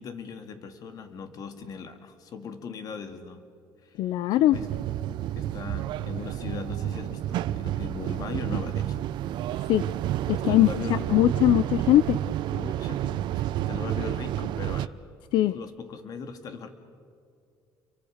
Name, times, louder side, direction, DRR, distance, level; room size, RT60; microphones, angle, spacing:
voice 1, 0.0-3.4 3.8-4.0 4.3-4.7 5.3-9.0 10.3-11.1 12.5-14.9 15.5-16.7, left 5 dB, 50° left, 8 dB, 2.3 m, -39 dB
voice 2, 4.0-4.6 9.7-9.8 10.3-12.2 15.3-15.5, left 14 dB, 70° left, 14 dB, 0.7 m, -21 dB
sound 1, 4.5-14.9, right 12 dB, 65° right, 0.7 m, -30 dB
29.5 x 23.5 x 6.6 m, 2.4 s
cardioid pair, 140°, 8 cm